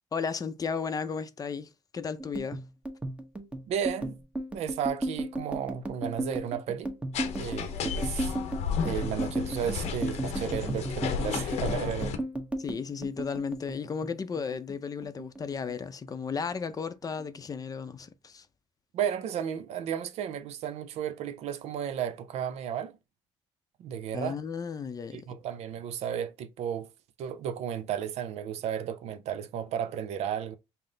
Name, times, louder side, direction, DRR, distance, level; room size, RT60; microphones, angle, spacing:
voice 1, 0.1-2.6 12.6-18.5 24.1-25.3, left 6 dB, 35° left, 0.5 m, -34 dB
sound 1, 2.2-14.8 15.0-16.1 16.4-16.7 17.0-17.7, right 1 dB, 10° right, 0.8 m, -35 dB
voice 2, 3.7-4.1 4.5-6.9 7.4-8.3 8.8-12.2 18.9-23.0 23.8-24.4 25.1-26.9 27.2-30.6, right 9 dB, 75° right, 0.6 m, -33 dB
sound 2, 7.1-12.2, left 7 dB, 80° left, 0.8 m, -33 dB
5.7 x 2.0 x 3.8 m
cardioid pair, 95°, 11 cm